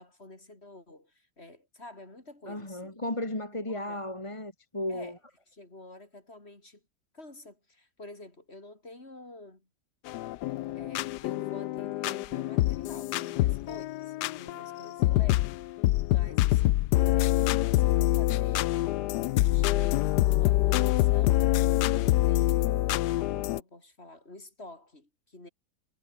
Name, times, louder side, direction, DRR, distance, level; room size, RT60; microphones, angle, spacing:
voice 1, 0.0-3.0 3.6-4.0 4.9-5.2 5.5-6.8 7.1-9.7 10.7-15.5 16.0-17.5 17.7-21.4 21.9-25.5, left 2 dB, 40° left, 4.8 m, -49 dB
voice 2, 2.5-5.2, left 1 dB, 20° left, 2.7 m, -34 dB
sound 1, 10.1-23.6, left 16 dB, 80° left, 1.2 m, -26 dB
omnidirectional pair, 1.8 m